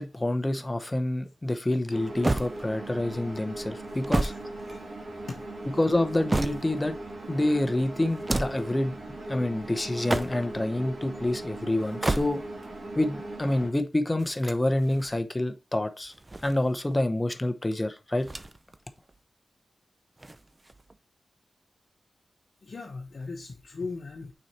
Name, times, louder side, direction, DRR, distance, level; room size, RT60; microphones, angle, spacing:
voice 1, 0.0-4.3 5.8-6.9 7.3-9.0 9.3-12.4 13.0-16.1 16.4-18.3, left 1 dB, 15° left, 0.8 m, -27 dB
sound 1, 1.9-13.7, right 2 dB, 60° right, 2.9 m, -39 dB
sound 2, 2.2-3.0 3.8-5.2 5.9-6.9 8.1-8.7 9.9-10.6 11.8-12.7 14.2-15.2 16.1-17.0 18.2-18.8 19.1-19.2 20.2-21.0, right 2 dB, 20° right, 0.5 m, -32 dB
voice 2, 22.6-24.3, left 4 dB, 50° left, 1.0 m, -38 dB
6.3 x 4.2 x 4.2 m
wide cardioid pair, 140°, 0 cm